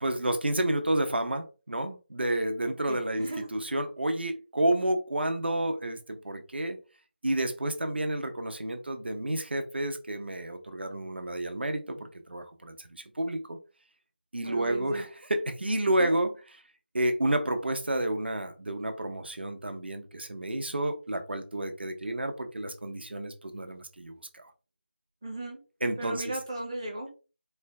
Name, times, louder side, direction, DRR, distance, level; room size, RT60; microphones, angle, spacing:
voice 1, 0.0-6.8 7.2-13.6 14.3-16.3 16.9-24.5 25.8-26.2, right 1 dB, 65° right, 0.9 m, -30 dB
voice 2, 2.9-3.5 14.4-15.0 16.0-16.2 25.2-25.6 26.0-27.1, right 1 dB, 25° right, 0.6 m, -36 dB
4.3 x 2.2 x 3.4 m
figure-of-eight pair, 170°, 6 cm